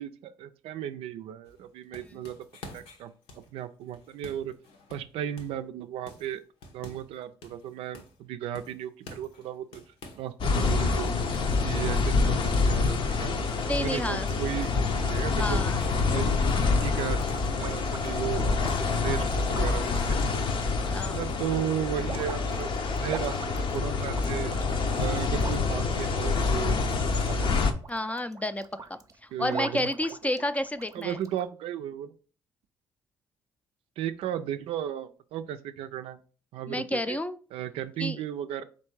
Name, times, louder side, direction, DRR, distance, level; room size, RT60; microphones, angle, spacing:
voice 1, 0.0-2.5 2.7-3.1 3.5-4.5 4.9-6.4 6.7-9.8 10.1-11.1 11.6-15.7 16.1-16.5 16.8-18.7 19.0-20.4 21.1-24.5 24.9-26.8 27.2-27.5 29.3-29.9 30.9-32.1 34.0-36.2 36.5-37.2 37.5-38.6, right 10 dB, 75° right, 10 dB, 0.4 m, -35 dB
sound 1, 1.5-5.7 6.1-7.2 7.4-8.2 8.6-10.3 10.6-13.2 13.5-13.7 14.0-17.6 18.0-20.5 20.9-21.4, left 2 dB, 75° left, 1.0 m, -50 dB
sound 2, 10.4-27.7, left 4 dB, 55° left, 0.7 m, -27 dB
voice 2, 13.6-14.3 15.4-15.8 20.9-21.2 27.9-28.7 29.2-31.2 36.7-37.4 38.0-38.2, left 1 dB, 15° left, 12 dB, 0.4 m, -30 dB
sound 3, 16.0-18.4 19.2-21.1 21.3-31.5, right 4 dB, 35° right, 0.6 m, -44 dB
3.5 x 2.7 x 4.6 m, 0.39 s
supercardioid pair, 60°, 10 cm